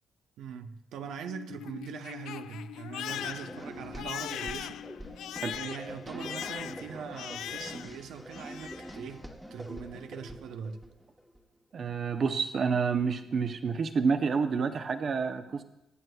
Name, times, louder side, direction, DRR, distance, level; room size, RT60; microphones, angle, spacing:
voice 1, 0.4-4.8 5.5-9.2 9.5-10.8, right 7 dB, 90° right, 7 dB, 0.7 m, -41 dB
Crying sobbing, 1.0-8.0 8.3-9.0, left 11 dB, 90° left, 0.3 m, -40 dB
sound 1, 3.1-11.4, equal, 5° right, 1.1 m, -44 dB
voice 2, 11.7-15.6, right 5 dB, 45° right, 7 dB, 0.7 m, -29 dB
23.0 x 9.5 x 2.3 m, 0.86 s
cardioid pair, 140°, 0 cm